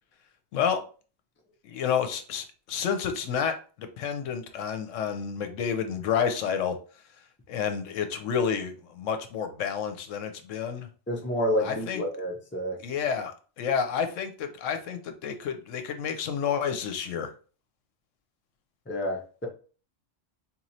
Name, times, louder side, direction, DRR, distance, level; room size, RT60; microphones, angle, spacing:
voice 1, 1.6-6.8 7.5-10.9 11.6-12.0 12.8-17.3, left 7 dB, 80° left, 8 dB, 1.0 m, -30 dB
voice 2, 11.1-12.8 18.9-19.5, equal, 10° left, 0 dB, 0.6 m, -29 dB
4.2 x 3.0 x 2.7 m, 0.38 s
omnidirectional pair, 1.3 m